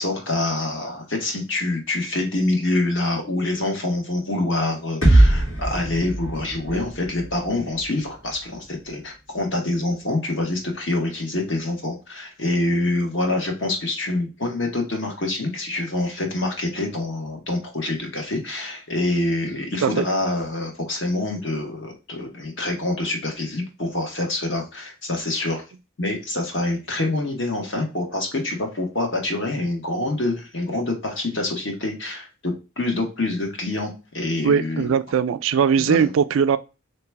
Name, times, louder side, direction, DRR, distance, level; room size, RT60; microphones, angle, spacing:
voice 1, 0.0-25.6 26.0-34.9 35.8-36.1, left 2 dB, 60° left, 1.2 m, -26 dB
sound 1, 5.0-8.9, right 1 dB, 90° left, 2.2 m, -21 dB
voice 2, 34.4-36.6, right 7 dB, 70° right, 0.3 m, -20 dB
3.3 x 2.9 x 4.6 m
head